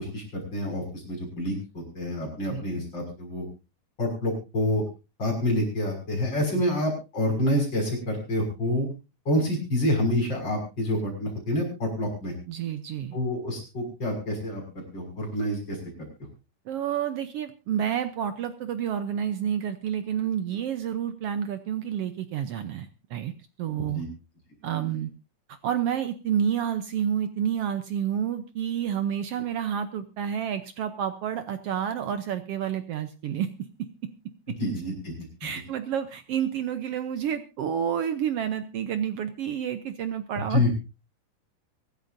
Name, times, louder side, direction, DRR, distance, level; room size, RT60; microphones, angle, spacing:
voice 1, 0.0-3.4 4.0-4.8 5.2-8.9 9.3-12.3 13.1-14.6 14.9-15.8 23.8-24.1 34.6-35.1 40.5-40.7, left 1 dB, 30° left, 0 dB, 7.0 m, -27 dB
voice 2, 12.5-13.2 16.7-22.9 23.1-23.3 23.6-24.0 24.6-25.1 25.6-33.5 35.4-40.7, right 9 dB, 80° right, 10 dB, 1.3 m, -29 dB
24.0 x 13.0 x 2.7 m, 0.29 s
omnidirectional pair, 3.8 m